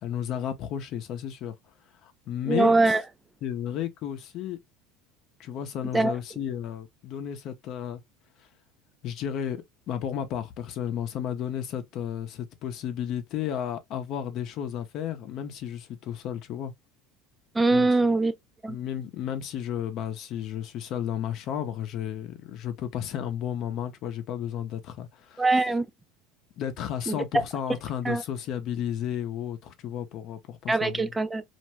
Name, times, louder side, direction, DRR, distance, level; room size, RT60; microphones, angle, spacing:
voice 1, 0.0-1.5 2.0-2.9 3.4-4.6 5.4-8.0 9.0-16.7 17.7-17.9 18.7-25.4 26.6-31.1, left 9 dB, 55° left, 0.6 m, -33 dB
voice 2, 2.5-3.0 5.9-6.1 17.6-18.3 18.6-18.8 25.4-25.9 27.1-27.4 28.1-28.2 30.7-31.4, right 3 dB, 10° right, 0.4 m, -22 dB
2.5 x 2.2 x 3.0 m
supercardioid pair, 100°, 0 cm